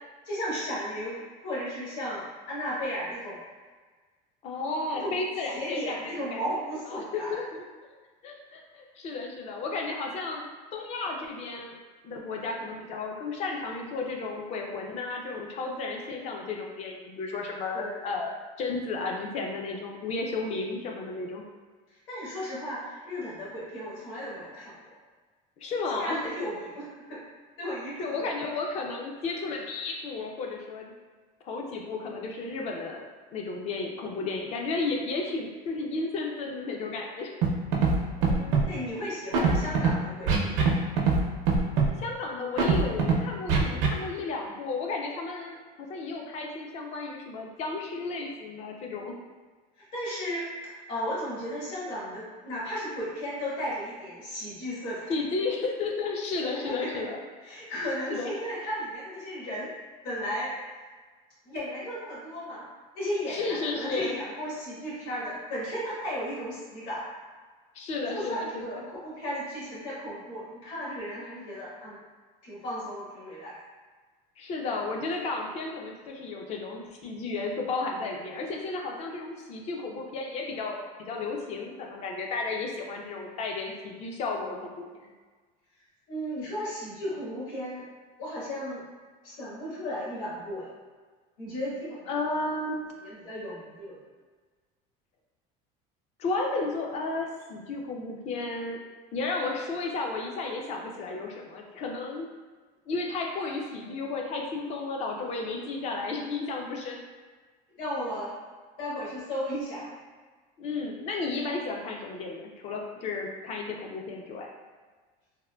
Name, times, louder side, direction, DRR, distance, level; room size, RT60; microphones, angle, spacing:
voice 1, 0.2-3.4 4.9-5.2 5.5-7.5 17.7-18.1 21.9-25.0 25.8-27.2 27.6-28.3 38.1-40.8 49.9-55.2 56.4-57.0 57.4-59.7 60.0-60.5 61.4-62.7 62.9-67.0 68.1-72.0 72.4-73.5 86.1-87.8 88.2-88.8 89.2-90.7 91.4-92.2 93.0-94.0 107.8-108.3 108.8-109.9, equal, 65° left, -7 dB, 1.4 m, -35 dB
voice 2, 4.4-6.4 6.9-7.6 8.2-11.8 12.0-21.4 25.6-26.2 28.0-30.9 31.4-37.3 42.0-49.1 55.1-57.2 58.1-58.3 63.3-64.2 67.7-68.8 74.4-84.8 92.1-92.8 96.2-98.8 99.1-102.3 102.9-107.0 110.6-114.5, left 3 dB, 35° left, 1 dB, 0.4 m, -33 dB
Scratching (performance technique), 37.4-37.5 37.7-37.9 38.2-38.6 39.3-39.9 40.3-40.7 41.0-41.2 41.5-41.9 42.6-43.1 43.5-43.9, right 5 dB, 80° right, 0.6 m, -21 dB
3.5 x 2.1 x 2.2 m, 1.4 s
cardioid pair, 155°, 19 cm